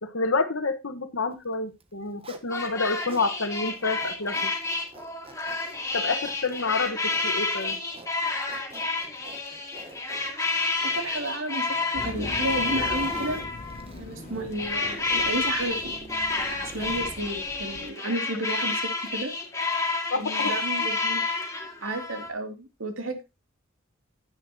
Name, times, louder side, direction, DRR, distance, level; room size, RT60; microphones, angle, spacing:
voice 1, 0.0-4.5 5.9-7.8 20.1-20.5 20.8-20.9, left 3 dB, 80° left, 9 dB, 1.3 m, -28 dB
Zipper (clothing), 1.7-3.3 3.7-17.4, right 1 dB, 30° right, 1.2 m, -45 dB
sound 1, 2.5-13.9 14.5-22.3, left 3 dB, 15° left, 2.3 m, -29 dB
voice 2, 10.8-13.4 14.0-15.9 16.3-19.3 20.1-21.2 21.8-23.4, right 1 dB, 80° right, 5 dB, 2.6 m, -32 dB
sound 2, 12.0-17.9, left 2 dB, 35° left, 1.1 m, -42 dB
10.5 x 10.0 x 2.9 m, 0.24 s
head